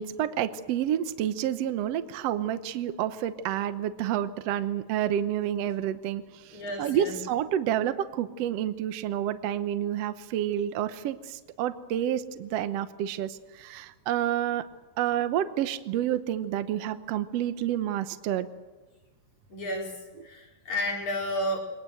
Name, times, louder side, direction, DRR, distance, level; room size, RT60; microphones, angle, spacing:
voice 1, 0.0-14.7 15.0-18.5, right 11 dB, 65° right, 11 dB, 1.8 m, -29 dB
voice 2, 6.5-7.1 19.5-19.9 20.2-21.6, left 1 dB, 70° left, -1 dB, 6.1 m, -31 dB
23.0 x 20.0 x 7.9 m, 1.2 s
omnidirectional pair, 3.5 m